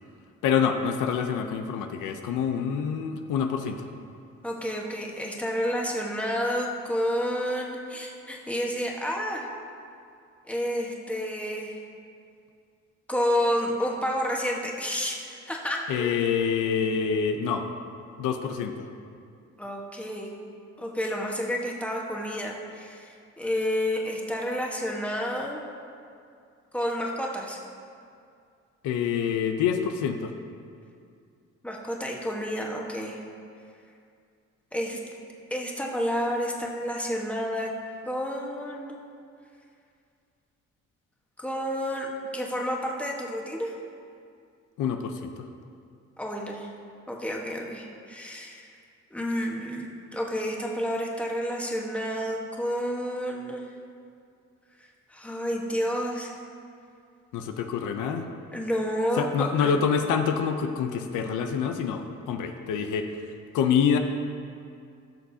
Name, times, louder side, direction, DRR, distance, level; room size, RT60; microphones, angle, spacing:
voice 1, 0.4-3.8 15.9-17.7 18.2-18.9 28.8-30.3 44.8-45.3 57.3-58.3 59.2-63.1 63.5-64.0, left 7 dB, 90° left, 6 dB, 0.7 m, -26 dB
voice 2, 4.4-9.5 10.5-11.8 13.1-16.1 19.6-20.4 20.8-25.6 26.7-27.6 31.6-33.2 34.7-35.0 35.5-37.7 38.0-39.0 41.4-42.1 42.3-43.8 46.2-46.7 47.1-48.7 49.1-53.6 55.1-56.3 58.5-59.7, equal, 5° left, -1 dB, 1.3 m, -30 dB
16.0 x 6.3 x 2.8 m, 2.4 s
cardioid pair, 90°, 30 cm